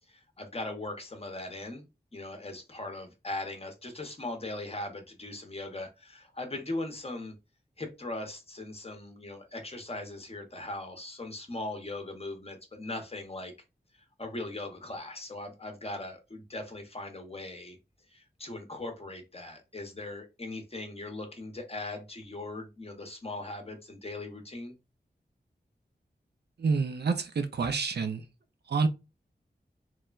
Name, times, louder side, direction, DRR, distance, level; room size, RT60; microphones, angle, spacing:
voice 1, 0.1-1.9 2.1-7.3 7.8-13.5 13.9-17.8 18.1-24.7, left 2 dB, 35° left, 0.7 m, -39 dB
voice 2, 26.6-28.3 28.7-28.9, right 4 dB, 70° right, 0.5 m, -28 dB
3.1 x 2.1 x 2.3 m
wide cardioid pair, 60°, 18 cm